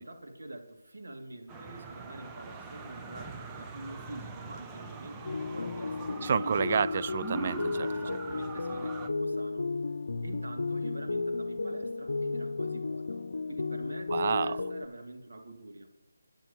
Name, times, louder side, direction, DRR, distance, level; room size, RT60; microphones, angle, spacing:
voice 1, 0.0-6.8 7.9-9.7 10.2-13.2 13.5-15.9, right 1 dB, 75° right, 2 dB, 2.6 m, -45 dB
sound 1, 1.5-9.1, right 4 dB, 10° right, 0.7 m, -42 dB
sound 2, 5.2-14.9, left 3 dB, 65° left, 0.9 m, -34 dB
voice 2, 6.2-7.9 14.1-14.5, right 6 dB, 35° right, 17 dB, 0.3 m, -29 dB
22.0 x 10.5 x 3.1 m, 0.93 s
figure-of-eight pair, 165°, 0 cm